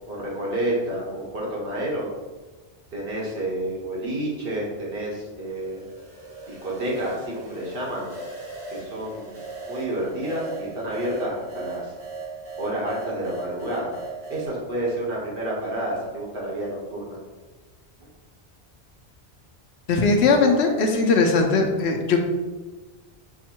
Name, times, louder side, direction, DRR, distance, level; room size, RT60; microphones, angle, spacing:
voice 1, 0.1-2.1 2.9-5.8 6.5-8.1 8.7-9.4 9.7-11.9 12.6-14.0 14.3-17.2, right 1 dB, 60° right, -4 dB, 1.3 m, -29 dB
sound 1, 5.4-14.5, right 4 dB, 85° right, 1.9 m, -38 dB
voice 2, 19.9-22.2, left 4 dB, 80° left, 3 dB, 0.9 m, -19 dB
4.6 x 2.1 x 4.4 m, 1.2 s
omnidirectional pair, 1.1 m